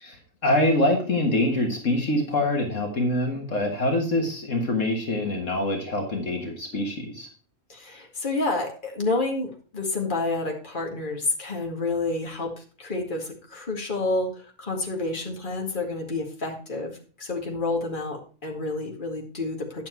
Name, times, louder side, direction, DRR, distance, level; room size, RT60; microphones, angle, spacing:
voice 1, 0.0-7.3, left 1 dB, 65° left, 2 dB, 2.0 m, -25 dB
voice 2, 7.7-19.9, left 2 dB, 35° left, 0 dB, 2.2 m, -29 dB
10.5 x 7.4 x 4.5 m, 0.39 s
omnidirectional pair, 1.4 m